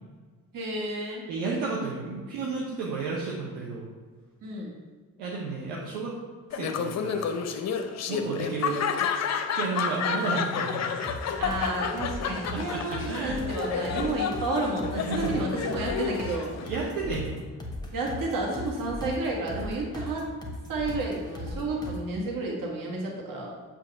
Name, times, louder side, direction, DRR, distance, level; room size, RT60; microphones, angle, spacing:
voice 1, 0.5-1.3 4.4-4.7 11.4-16.5 17.9-20.3 20.7-23.5, right 2 dB, 50° right, -2 dB, 1.7 m, -31 dB
voice 2, 1.3-3.9 5.2-6.2 6.5-7.4 8.1-8.8 9.5-11.0 12.3-13.7 14.9-15.8 16.6-17.4, right 4 dB, 70° right, -3 dB, 0.9 m, -33 dB
Laughter, 6.5-16.9, left 6 dB, 40° left, 0.6 m, -30 dB
sound 1, 11.0-22.0, left 1 dB, 10° left, 1.3 m, -39 dB
7.6 x 2.9 x 4.8 m, 1.5 s
figure-of-eight pair, 45°, 44 cm